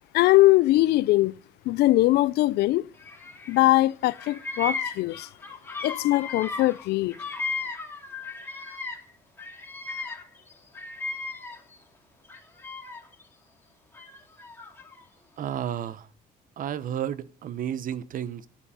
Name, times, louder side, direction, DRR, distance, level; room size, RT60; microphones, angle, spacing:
voice 1, 0.1-1.3 1.7-2.9 3.5-5.3 5.8-7.1, left 17 dB, 75° left, 0.5 m, -21 dB
Bird vocalization bird call bird song, 3.0-3.8 4.0-9.1 9.4-11.8 12.2-13.2 13.9-15.0, left 3 dB, 10° left, 3.0 m, -36 dB
voice 2, 15.4-16.1 16.6-18.5, right 10 dB, 55° right, 0.9 m, -32 dB
10.0 x 6.8 x 8.8 m
cardioid pair, 110°, 17 cm